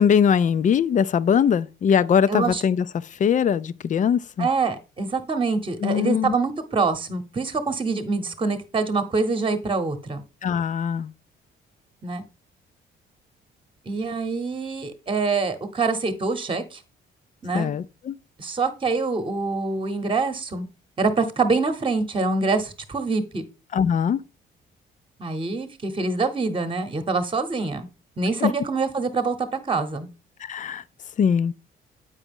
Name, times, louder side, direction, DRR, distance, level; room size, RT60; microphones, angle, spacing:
voice 1, 0.0-2.8 3.2-4.5 5.8-6.3 10.4-11.1 17.5-18.1 23.7-24.2 28.4-28.5 30.4-30.8 31.2-31.5, left 7 dB, 40° left, 0.4 m, -21 dB
voice 2, 2.3-2.6 4.4-10.2 12.0-12.2 13.8-16.8 17.4-17.7 18.4-20.7 21.0-23.4 25.2-27.9 28.2-30.1, right 4 dB, 25° right, 1.0 m, -25 dB
8.0 x 4.9 x 3.6 m
cardioid pair, 90°, 20 cm